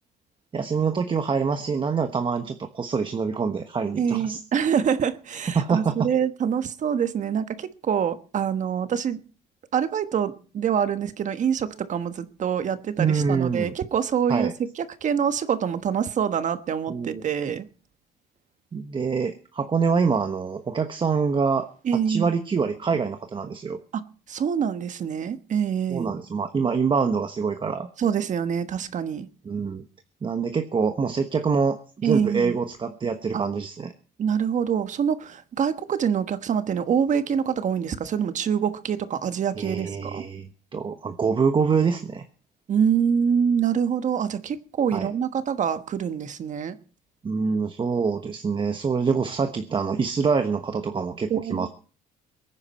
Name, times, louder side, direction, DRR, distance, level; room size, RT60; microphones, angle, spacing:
voice 1, 0.5-4.4 5.5-6.1 13.0-13.7 14.3-14.5 16.9-17.2 18.7-21.7 22.1-23.8 25.9-27.9 29.4-29.8 30.2-33.9 39.6-42.2 44.9-45.1 47.2-51.7, right 5 dB, 30° right, 1.2 m, -25 dB
voice 2, 4.0-9.2 9.7-17.7 21.8-22.3 24.3-26.1 28.0-29.3 32.0-32.6 33.3-33.4 34.2-40.2 42.7-46.8 51.3-51.7, right 7 dB, 45° right, 1.3 m, -25 dB
22.5 x 9.8 x 4.3 m
cardioid pair, 110°, 17 cm